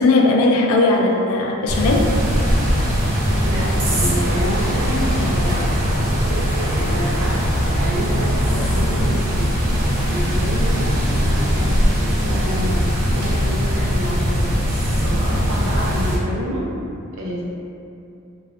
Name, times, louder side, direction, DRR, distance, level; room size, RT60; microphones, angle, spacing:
voice 1, 0.0-2.1, left 2 dB, 80° left, 1 dB, 0.3 m, -17 dB
sound 1, 1.7-16.2, equal, 90° right, 0.9 m, -20 dB
voice 2, 3.4-6.4 6.7-7.4 7.7-9.5 10.0-12.8 13.1-16.6 17.1-17.4, equal, 60° right, -6 dB, 0.6 m, -29 dB
sound 2, 4.4-13.2, equal, 10° left, 0.4 m, -36 dB
2.4 x 2.3 x 2.3 m, 2.6 s
head